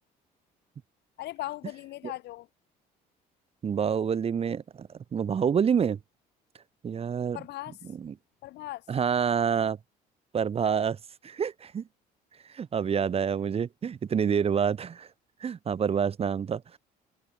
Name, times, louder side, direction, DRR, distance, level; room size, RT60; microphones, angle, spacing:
voice 1, 1.2-2.5 7.3-7.8 8.4-8.9, left 16 dB, 80° left, 7.3 m, -38 dB
voice 2, 3.6-6.0 6.8-7.4 8.0-8.1 8.9-9.8 10.3-11.0 11.2-11.8 12.5-15.1 15.4-16.6, right 7 dB, 35° right, 1.1 m, -27 dB
open air
cardioid pair, 110°, 17 cm